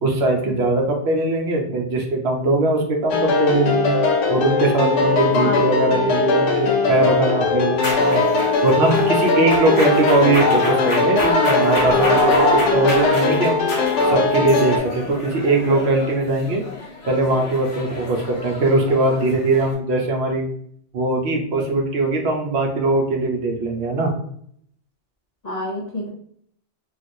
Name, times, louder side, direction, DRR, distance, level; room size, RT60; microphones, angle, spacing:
voice 1, 0.0-3.9 4.3-8.2 8.6-13.6 14.1-16.6 17.1-20.4 20.9-24.1, right 2 dB, 65° right, 1 dB, 0.8 m, -20 dB
sound 1, 3.1-14.8, left 3 dB, 90° left, 0.9 m, -20 dB
sound 2, 7.8-19.7, left 2 dB, 65° left, 1.0 m, -26 dB
voice 2, 25.4-26.1, left 1 dB, 45° left, -4 dB, 0.6 m, -29 dB
3.1 x 2.4 x 2.6 m, 0.66 s
omnidirectional pair, 1.2 m